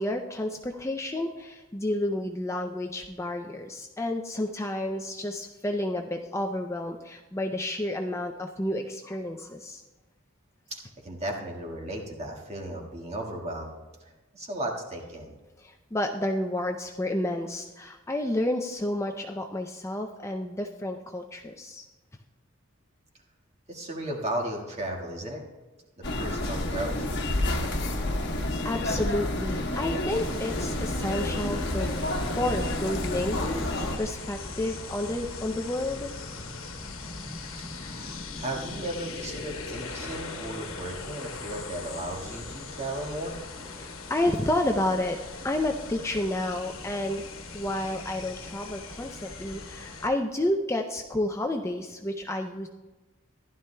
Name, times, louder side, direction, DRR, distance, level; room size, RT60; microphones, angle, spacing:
voice 1, 0.0-9.8 15.6-21.8 28.3-32.0 32.3-36.1 43.7-45.2 45.4-47.2 47.5-52.7, left 1 dB, 15° left, 3 dB, 0.4 m, -30 dB
voice 2, 10.7-13.7 14.0-15.3 23.7-25.4 26.0-27.1 37.7-43.4, right 1 dB, 30° right, 1 dB, 1.6 m, -35 dB
sound 1, 26.0-34.0, left 1 dB, 55° left, 1.1 m, -29 dB
sound 2, 30.1-50.1, left 3 dB, 80° left, 1.2 m, -40 dB
15.0 x 11.5 x 2.2 m, 1.2 s
head